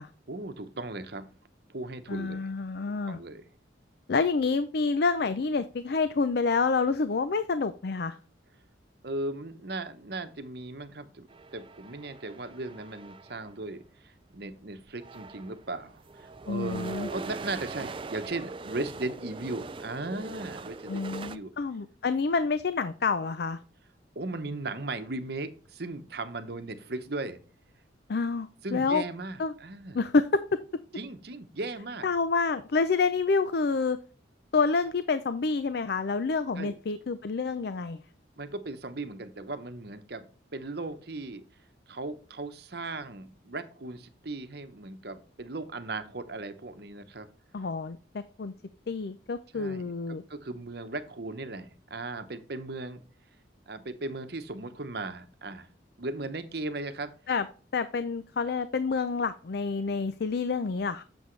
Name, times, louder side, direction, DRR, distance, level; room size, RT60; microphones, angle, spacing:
voice 1, 0.3-1.3 1.7-2.5 3.0-3.4 9.0-21.5 24.1-27.4 28.6-30.0 31.0-32.1 36.6-36.7 38.4-40.3 40.5-41.4 41.9-47.3 49.5-53.0 53.7-55.7 56.0-57.1, right 2 dB, 60° right, 9 dB, 1.0 m, -37 dB
voice 2, 2.1-3.2 4.1-8.2 16.5-17.1 20.9-23.6 28.1-29.0 29.4-29.5 29.9-30.6 32.0-34.0 34.5-38.0 47.5-48.5 48.9-50.2 57.3-57.5 57.7-61.0, left 4 dB, 60° left, 12 dB, 0.5 m, -28 dB
sound 1, 11.3-13.5 14.5-14.6 14.9-21.4, right 3 dB, 30° right, 0.4 m, -41 dB
8.1 x 7.0 x 3.2 m, 0.39 s
head